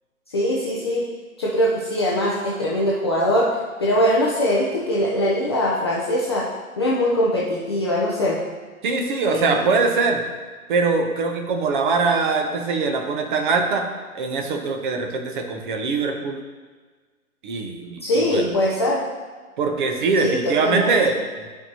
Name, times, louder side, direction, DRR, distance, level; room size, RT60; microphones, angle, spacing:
voice 1, 0.3-1.0 1.4-3.5 3.8-6.5 6.8-8.4 9.2-9.6 18.0-19.0 20.2-21.1, equal, 20° left, -5 dB, 0.4 m, -22 dB
voice 2, 8.8-10.2 10.7-13.9 14.1-16.4 17.4-18.5 19.6-21.1, right 4 dB, 35° right, 4 dB, 0.9 m, -22 dB
12.0 x 4.7 x 2.8 m, 1.4 s
hypercardioid pair, 135°, 43 cm